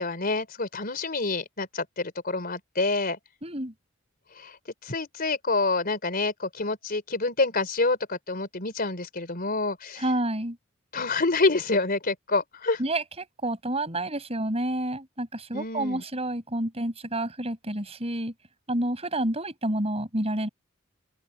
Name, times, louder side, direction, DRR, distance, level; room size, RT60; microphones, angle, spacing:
voice 1, 0.0-3.2 4.4-4.5 4.8-10.0 10.9-12.8 15.5-16.0, left 3 dB, 45° left, 4.1 m, -27 dB
voice 2, 3.4-3.7 10.0-10.6 12.8-18.3 18.7-20.5, right 1 dB, 30° right, 6.4 m, -29 dB
open air
head